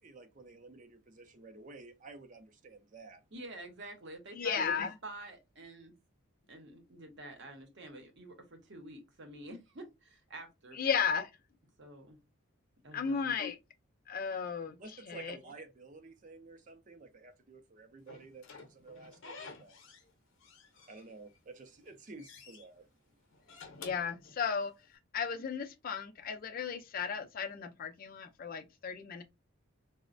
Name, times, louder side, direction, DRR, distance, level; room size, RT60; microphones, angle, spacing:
voice 1, 0.0-3.2 14.8-19.8 20.9-22.9, right 3 dB, 35° right, 0.4 m, -52 dB
voice 2, 3.3-5.9 6.5-10.8 11.8-12.2 12.8-13.3, right 2 dB, 55° right, 0.8 m, -48 dB
voice 3, 4.4-4.9 10.7-11.3 12.9-13.6 14.1-14.8 15.1-15.4 23.8-24.7 25.1-29.2, left 6 dB, 45° left, 0.4 m, -34 dB
Slam / Squeak, 18.1-20.1 20.4-21.4 21.8-22.6 23.3-24.9, left 4 dB, 65° left, 0.7 m, -52 dB
4.0 x 2.0 x 2.5 m
head